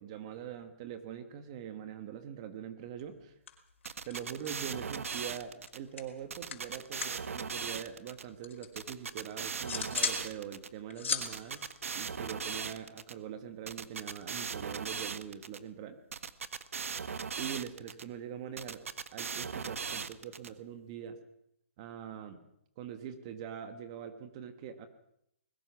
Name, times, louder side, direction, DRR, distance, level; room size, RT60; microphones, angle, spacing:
voice 1, 0.0-3.3 4.0-16.0 17.4-18.8 19.1-21.2 21.8-22.4 22.8-24.9, right 9 dB, 25° right, 9 dB, 1.4 m, -43 dB
sound 1, 3.0-3.2 3.5-4.7 5.0-7.3 7.5-8.8 9.2-10.3 10.6-12.7, left 6 dB, 65° left, 4.6 m, -38 dB
sound 2, 3.8-5.8 6.3-8.2 8.8-10.7 11.2-13.1 13.7-15.6 16.1-18.0 18.6-20.5, right 6 dB, 85° right, 1.4 m, -38 dB
21.0 x 21.0 x 6.0 m, 0.76 s
hypercardioid pair, 170°, 7 cm